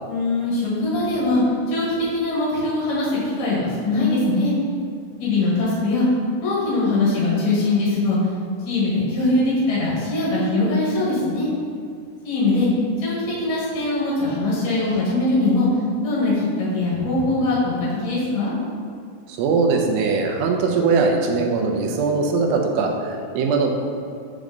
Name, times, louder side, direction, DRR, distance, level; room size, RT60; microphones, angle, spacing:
voice 1, 0.1-1.4 1.7-4.5 5.2-6.1 6.4-8.2 8.7-11.5 12.2-12.7 13.0-15.7 16.0-17.8 18.0-18.5, left 2 dB, 55° left, -7 dB, 2.8 m, -21 dB
voice 2, 19.3-23.7, right 4 dB, 80° right, 2 dB, 2.5 m, -21 dB
6.3 x 5.2 x 3.8 m, 2.3 s
omnidirectional pair, 4.2 m